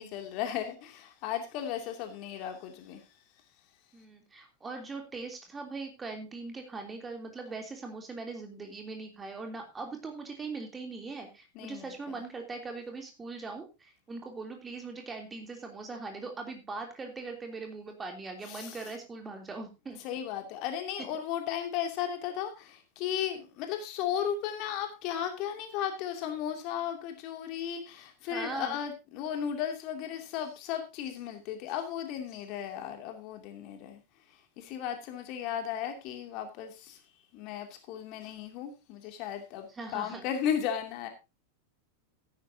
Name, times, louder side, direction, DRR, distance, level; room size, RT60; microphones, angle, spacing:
voice 1, 0.0-3.0 11.5-11.9 18.4-18.8 20.0-34.0 34.6-37.0 37.3-39.7 39.9-41.1, left 9 dB, 40° left, 5 dB, 2.7 m, -35 dB
voice 2, 3.9-20.0 28.3-28.8 39.7-40.2, right 3 dB, 15° right, 3 dB, 3.2 m, -41 dB
15.5 x 10.5 x 2.9 m, 0.27 s
figure-of-eight pair, 90°, 0 cm